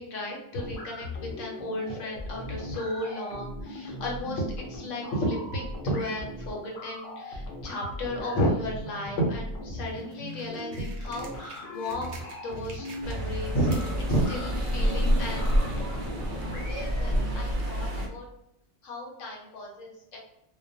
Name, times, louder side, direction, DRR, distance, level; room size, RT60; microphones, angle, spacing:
voice 1, 0.0-4.4 4.7-15.5 16.5-18.3 18.8-20.2, equal, 80° left, -1 dB, 1.1 m, -33 dB
sound 1, 0.5-17.4, left 1 dB, 60° left, 0.8 m, -39 dB
sound 2, 9.8-13.4 13.6-15.7 16.5-16.6, right 3 dB, 80° right, 0.9 m, -49 dB
sound 3, 13.0-18.1, equal, 55° right, 0.6 m, -28 dB
2.3 x 2.2 x 2.6 m, 0.80 s
omnidirectional pair, 1.3 m